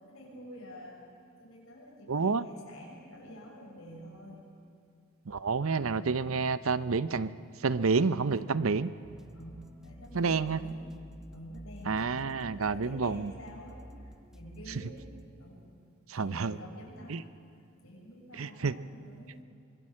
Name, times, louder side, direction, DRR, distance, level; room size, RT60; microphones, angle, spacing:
voice 1, 0.1-1.0 1.4-4.5 9.3-10.9 11.3-15.0 15.4-15.6 16.1-17.3 17.8-19.4, equal, 85° left, -2 dB, 7.0 m, -48 dB
voice 2, 2.1-2.4 5.3-7.3 7.6-8.9 10.1-10.6 11.9-13.3 16.1-16.6 17.1-17.2 18.3-18.7, right 4 dB, 80° right, 15 dB, 0.7 m, -29 dB
Guitar & Flute Trap Loop, 9.0-15.3, equal, 5° right, 0.7 m, -51 dB
25.0 x 22.0 x 7.6 m, 2.3 s
head